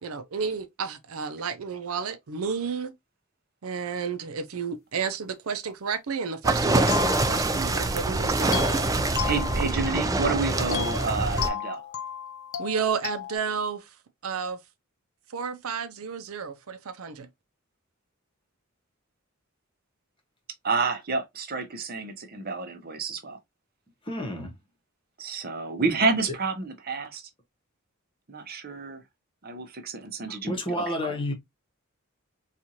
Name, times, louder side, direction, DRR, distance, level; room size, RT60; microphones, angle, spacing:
voice 1, 0.0-2.9 3.6-8.6 12.6-13.9 14.2-14.6 15.3-17.3, right 6 dB, 85° right, 0.6 m, -32 dB
sound 1, 6.4-11.5, right 2 dB, 15° right, 0.4 m, -25 dB
sound 2, 6.9-7.9 8.5-10.2 10.7-13.4, left 9 dB, 85° left, 0.6 m, -34 dB
voice 2, 9.2-11.8 20.6-23.4 25.2-27.2 28.3-29.0 29.4-31.2, right 4 dB, 45° right, 0.8 m, -29 dB
voice 3, 24.1-24.5 30.3-31.3, left 1 dB, 25° left, 1.0 m, -30 dB
4.3 x 2.4 x 2.8 m
head